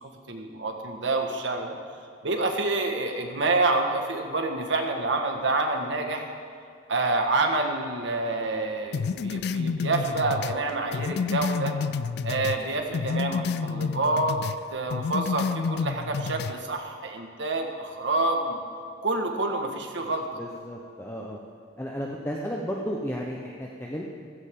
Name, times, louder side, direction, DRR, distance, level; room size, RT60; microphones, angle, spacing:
voice 1, 0.0-1.7 2.2-6.3 6.9-11.7 12.2-14.4 14.7-18.6 19.0-20.3, right 2 dB, 80° right, 3 dB, 1.6 m, -27 dB
sound 1, 8.9-12.6 12.9-14.6 14.9-16.6, left 5 dB, 60° left, 0.3 m, -29 dB
voice 2, 20.4-21.4 21.8-24.0, equal, 15° left, -1 dB, 0.9 m, -33 dB
16.0 x 15.5 x 3.8 m, 2.4 s
head